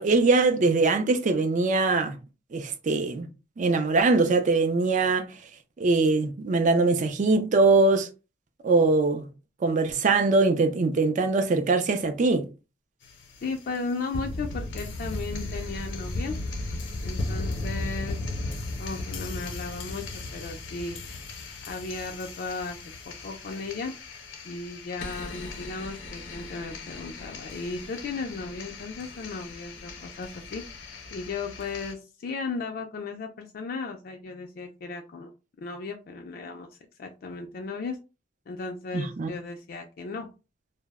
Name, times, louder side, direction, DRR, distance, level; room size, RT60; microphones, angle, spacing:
voice 1, 0.0-2.2 2.5-3.3 3.6-5.3 5.8-8.1 8.6-9.3 9.6-12.5 38.9-39.3, right 3 dB, 40° right, 0.4 m, -22 dB
sound 1, 13.0-31.9, left 2 dB, 80° left, 0.6 m, -36 dB
voice 2, 13.4-16.4 17.0-18.2 18.8-21.0 21.6-22.8 23.1-23.9 24.4-35.3 35.6-36.7 37.0-38.0 38.5-40.3, left 4 dB, 50° left, 0.3 m, -35 dB
2.0 x 2.0 x 3.4 m
head